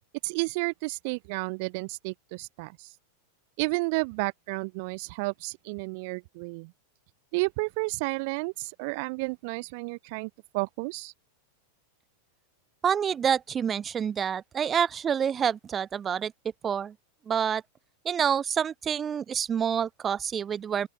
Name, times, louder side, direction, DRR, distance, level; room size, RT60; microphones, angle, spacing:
voice 1, 0.2-2.9 3.6-6.7 7.3-11.1, right 29 dB, 45° right, 2.0 m, -32 dB
voice 2, 12.8-16.3 16.6-16.9 17.3-17.6 18.0-20.9, right 8 dB, 20° right, 2.6 m, -27 dB
open air
figure-of-eight pair, 90°, 0 cm